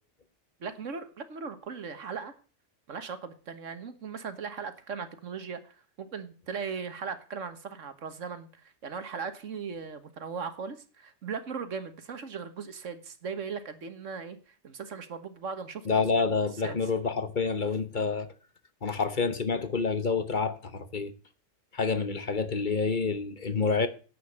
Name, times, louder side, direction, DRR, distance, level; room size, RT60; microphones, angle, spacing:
voice 1, 0.6-2.3 2.9-14.4 14.6-16.2 16.6-16.8, right 5 dB, 90° right, 1.7 m, -38 dB
voice 2, 15.9-18.3 18.8-21.1 21.7-23.9, left 4 dB, 40° left, 1.1 m, -28 dB
10.5 x 8.0 x 6.4 m
omnidirectional pair, 1.3 m